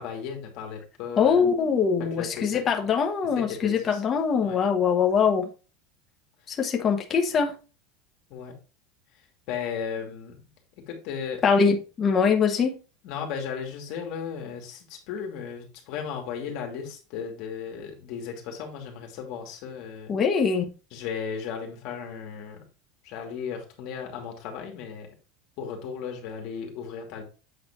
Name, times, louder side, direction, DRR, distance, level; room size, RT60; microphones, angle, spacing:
voice 1, 0.0-1.4 2.2-2.6 3.4-4.0 4.4-4.6 8.3-8.6 9.5-10.4 10.8-11.4 13.0-20.2 20.9-22.6 23.0-25.1 25.6-27.2, left 7 dB, 50° left, 2.4 m, -35 dB
voice 2, 1.2-5.5 6.5-7.5 11.4-12.8 20.1-20.7, left 6 dB, 20° left, 1.1 m, -23 dB
7.9 x 4.3 x 4.2 m
supercardioid pair, 170°, 0 cm